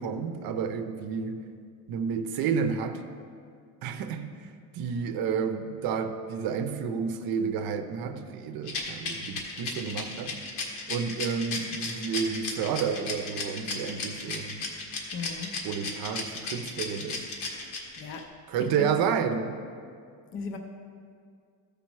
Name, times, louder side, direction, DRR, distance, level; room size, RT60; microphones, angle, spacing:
voice 1, 0.0-1.4 1.9-3.0 3.8-10.4 10.9-14.6 15.6-17.3 18.5-19.6, right 6 dB, 65° right, 8 dB, 0.7 m, -30 dB
Rattle, 8.7-18.2, left 4 dB, 90° left, 1.7 m, -34 dB
voice 2, 15.1-15.5 17.6-18.3 18.8-18.9 20.3-20.6, left 5 dB, 35° left, 4 dB, 0.5 m, -37 dB
14.5 x 5.1 x 4.7 m, 2.2 s
cardioid pair, 180°, 38 cm